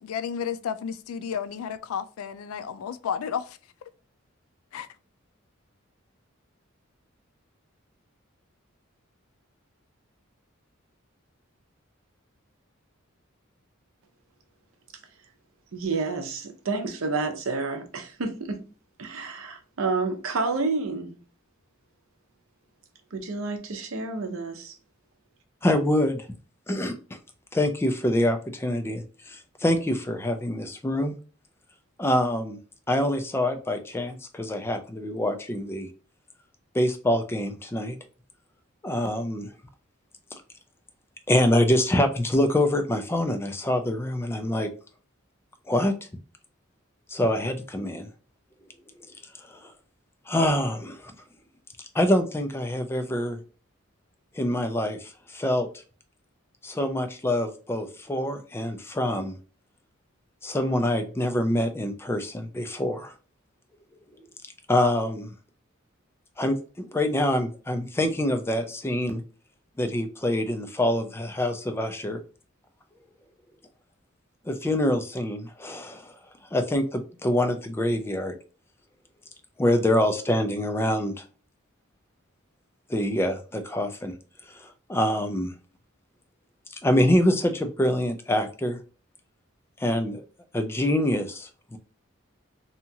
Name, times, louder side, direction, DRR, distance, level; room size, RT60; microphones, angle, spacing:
voice 1, 0.0-3.9 4.7-4.9, left 7 dB, 90° left, 0.3 m, -32 dB
voice 2, 15.7-18.7 19.0-21.2 23.1-24.8, right 3 dB, 80° right, 0.6 m, -29 dB
voice 3, 25.6-26.2 26.7-26.9 27.5-31.2 32.0-32.6 32.9-35.9 36.7-38.0 38.8-39.5 41.3-44.7 45.7-45.9 47.1-48.1 49.5-49.7 50.3-51.1 51.9-53.4 54.4-55.7 56.6-59.3 60.4-63.1 64.7-65.3 66.4-69.2 69.8-72.2 74.5-76.1 76.5-78.3 79.6-81.2 82.9-84.1 84.5-85.5 86.8-88.8 89.8-90.2 90.5-91.8, left 1 dB, 10° left, 0.3 m, -25 dB
2.8 x 2.3 x 2.6 m
head